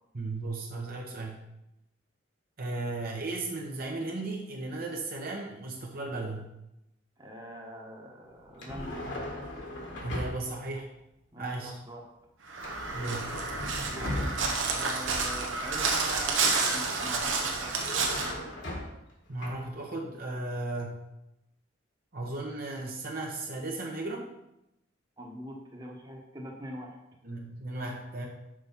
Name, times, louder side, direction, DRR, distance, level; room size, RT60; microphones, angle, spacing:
voice 1, 0.1-1.4 2.6-6.5 10.0-10.9 11.4-11.8 12.9-13.4 19.3-21.0 22.1-24.3 27.2-28.3, right 2 dB, 50° right, 0 dB, 1.0 m, -35 dB
voice 2, 7.2-8.9 11.3-12.0 13.3-13.5 13.8-17.7 25.2-27.0, equal, 20° right, -1 dB, 1.2 m, -43 dB
sound 1, 8.5-10.6 12.6-14.7 17.6-19.1 19.4-19.6, left 1 dB, 65° left, 1.8 m, -38 dB
Crow, 12.5-18.3, right 4 dB, 85° right, 1.1 m, -30 dB
6.2 x 4.8 x 5.6 m, 0.87 s
head